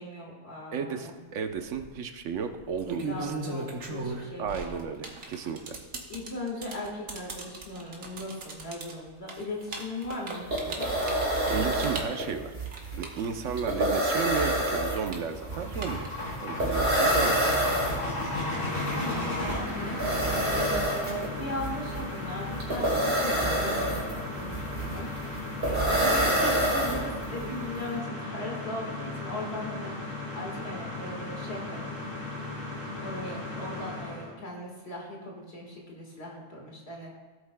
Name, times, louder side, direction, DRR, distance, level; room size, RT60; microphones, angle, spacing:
voice 1, 0.0-1.2 2.9-4.8 6.1-10.9 18.9-20.0 20.5-31.9 33.0-37.1, left 1 dB, 55° left, -2 dB, 1.9 m, -38 dB
voice 2, 0.7-3.3 4.4-5.8 11.4-12.5 13.0-16.1 16.4-17.6, right 6 dB, 70° right, 7 dB, 1.1 m, -33 dB
sound 1, 1.5-1.8 2.6-14.0 14.3-16.4, right 3 dB, 85° right, 1.5 m, -38 dB
sound 2, 10.0-10.1 10.3-27.4, right 1 dB, 35° right, 3.0 m, -28 dB
sound 3, 14.9-34.3, left 2 dB, 75° left, 3.2 m, -36 dB
17.5 x 8.2 x 2.2 m, 1.3 s
omnidirectional pair, 1.3 m